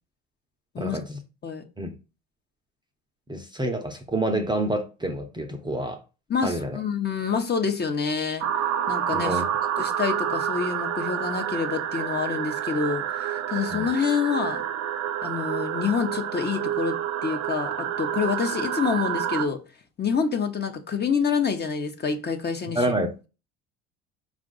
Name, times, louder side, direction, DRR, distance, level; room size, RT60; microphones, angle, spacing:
voice 1, 0.8-1.2 1.8-2.0 3.3-6.0 6.4-6.8 9.1-9.5 13.7-13.9 22.7-23.1, right 1 dB, 15° right, 0.7 m, -28 dB
voice 2, 6.3-8.4 8.9-9.4 9.8-14.6 15.2-19.6 20.0-22.8, left 6 dB, 30° left, 0.8 m, -27 dB
sound 1, 8.4-19.5, right 9 dB, 50° right, 0.6 m, -28 dB
4.5 x 2.5 x 3.8 m
hypercardioid pair, 65°, 34 cm